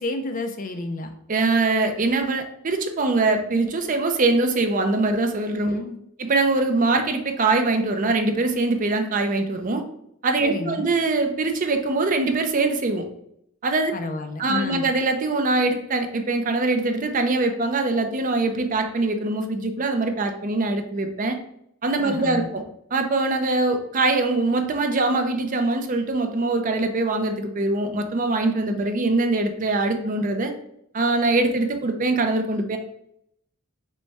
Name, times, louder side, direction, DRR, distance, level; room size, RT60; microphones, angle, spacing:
voice 1, 0.0-1.1 5.5-6.0 10.4-10.9 13.9-14.9 22.0-22.5, left 2 dB, 40° left, 7 dB, 0.5 m, -30 dB
voice 2, 1.3-5.8 6.2-9.8 10.2-13.1 13.6-13.9 14.4-21.4 21.8-22.6 22.9-30.5 30.9-32.8, right 3 dB, 35° right, 6 dB, 0.5 m, -23 dB
5.2 x 2.2 x 4.6 m, 0.74 s
head